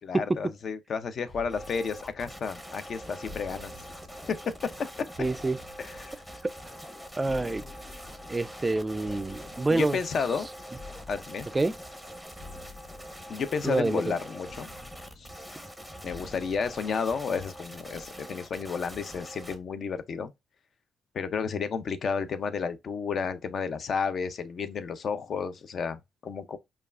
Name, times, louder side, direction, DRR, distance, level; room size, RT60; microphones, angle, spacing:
voice 1, 0.0-3.7 5.0-5.1 5.8-6.1 9.7-10.5 11.1-11.5 13.3-14.7 15.2-15.3 16.0-20.3 21.1-26.6, left 5 dB, 55° left, 0.5 m, -32 dB
sound 1, 1.3-16.9, left 3 dB, 20° left, 1.5 m, -50 dB
sound 2, 1.5-19.6, equal, ahead, 0.7 m, -44 dB
voice 2, 5.2-5.6 7.2-7.6 8.3-10.0 11.5-11.7 13.6-14.0, right 2 dB, 20° right, 0.3 m, -27 dB
5.2 x 2.3 x 2.4 m
cardioid pair, 85°, 0 cm